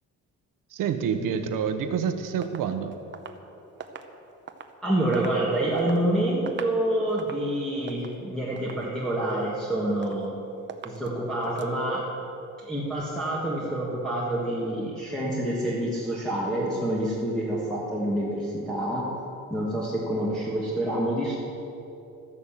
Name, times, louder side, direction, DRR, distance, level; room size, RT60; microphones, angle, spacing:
voice 1, 0.7-3.0, right 7 dB, 80° right, 8 dB, 1.1 m, -27 dB
sound 1, 2.4-4.8 5.1-6.0 6.4-6.8 7.1-7.5 7.9-8.2 8.6-8.9 9.3-9.7 10.0-10.4 10.7-11.1 11.4-11.7, right 6 dB, 35° right, 0.8 m, -43 dB
voice 2, 4.8-10.3 10.8-12.0 12.6-19.0 19.5-21.4, right 1 dB, ahead, -8 dB, 1.7 m, -27 dB
13.5 x 11.0 x 7.4 m, 2.9 s
cardioid pair, 175°, 32 cm